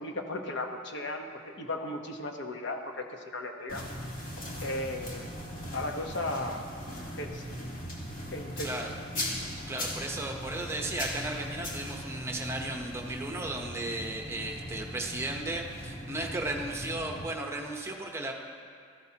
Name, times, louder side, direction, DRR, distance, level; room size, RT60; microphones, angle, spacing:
voice 1, 0.0-3.9 4.6-5.3 5.7-6.7 7.2-7.5 8.3-8.8, left 2 dB, 60° left, 3 dB, 1.0 m, -36 dB
sound 1, 3.7-17.3, equal, 45° left, 1.7 m, -39 dB
voice 2, 9.7-18.3, right 2 dB, 15° right, 1 dB, 0.8 m, -35 dB
16.5 x 14.5 x 2.9 m, 2.2 s
head